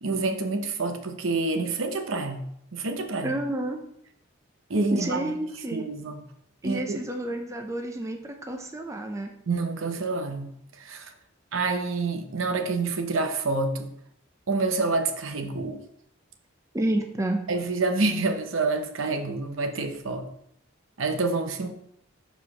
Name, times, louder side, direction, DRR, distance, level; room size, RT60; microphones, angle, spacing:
voice 1, 0.0-3.4 4.7-5.4 5.7-6.2 6.6-7.0 9.5-11.1 11.5-13.9 14.5-15.8 17.5-20.3 21.0-21.7, right 3 dB, 70° right, 6 dB, 0.8 m, -28 dB
voice 2, 3.2-3.8 4.9-5.8 6.6-9.3 16.7-17.4, right 1 dB, 15° right, 3 dB, 0.6 m, -30 dB
4.8 x 4.5 x 5.5 m, 0.72 s
head